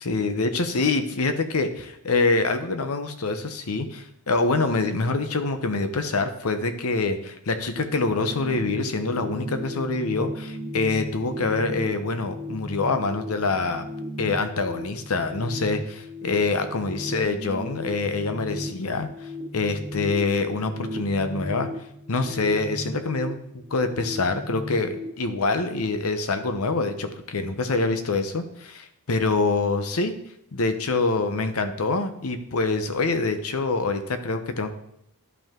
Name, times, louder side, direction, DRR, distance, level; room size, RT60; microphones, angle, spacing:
voice 1, 0.0-13.9 14.2-19.1 19.5-21.7 22.1-30.1 30.5-34.7, left 3 dB, 75° left, 9 dB, 0.8 m, -25 dB
sound 1, 7.7-25.0, left 1 dB, 50° right, 1.9 m, -36 dB
11.0 x 5.3 x 3.7 m, 0.78 s
head